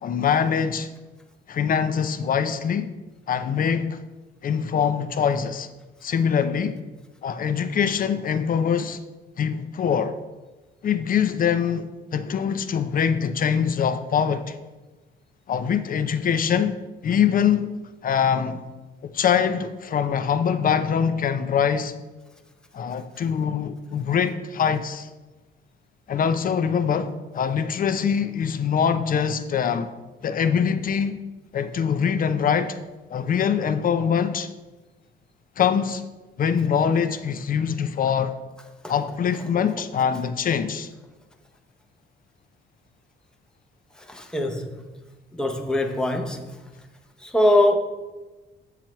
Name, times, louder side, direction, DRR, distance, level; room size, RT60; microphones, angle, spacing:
voice 1, 0.0-0.9 1.5-2.9 3.3-4.0 4.4-5.7 6.0-6.8 7.2-9.0 9.4-10.2 10.8-14.6 15.5-16.8 17.0-17.7 18.0-18.7 19.1-21.9 22.7-25.1 26.1-29.9 30.2-31.2 31.5-32.8 33.1-34.5 35.6-36.0 36.4-38.4 38.9-40.9, left 7 dB, 45° left, 0.5 m, -23 dB
voice 2, 44.1-44.8 45.3-46.5 47.2-47.8, left 1 dB, 5° left, 0.7 m, -22 dB
7.5 x 5.8 x 3.0 m
cardioid pair, 90°, 20 cm